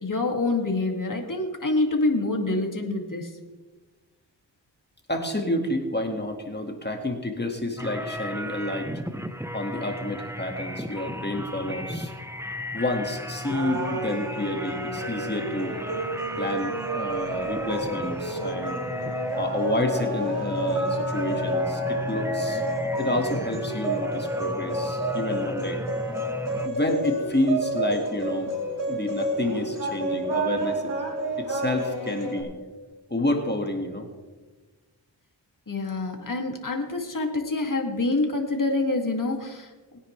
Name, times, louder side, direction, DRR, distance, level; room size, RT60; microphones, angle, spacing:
voice 1, 0.0-3.3 35.7-39.7, left 2 dB, 45° left, 2 dB, 2.4 m, -26 dB
voice 2, 5.1-8.9 9.5-12.1 12.7-15.8 16.4-18.8 19.3-22.6 23.0-25.8 26.6-28.5 28.9-30.9 31.4-32.5 33.1-34.1, left 1 dB, 20° left, 3 dB, 2.0 m, -29 dB
sound 1, 7.8-26.7, equal, 5° right, 0.8 m, -34 dB
sound 2, 13.4-32.4, right 1 dB, 65° right, 3.7 m, -30 dB
21.0 x 9.7 x 3.3 m, 1.3 s
cardioid pair, 55°, 45 cm